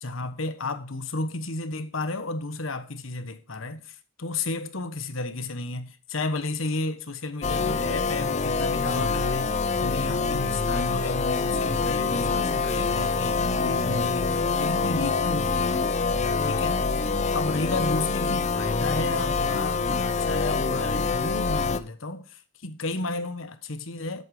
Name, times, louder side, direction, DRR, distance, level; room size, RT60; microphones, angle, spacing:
voice 1, 0.0-16.1 16.4-17.0 17.3-24.2, left 2 dB, 85° left, 1.3 m, -33 dB
sound 1, 7.4-21.8, left 4 dB, 35° left, 0.7 m, -25 dB
sound 2, 9.0-10.5 11.5-13.9, right 1 dB, 85° right, 4.5 m, -45 dB
11.5 x 8.2 x 4.9 m
head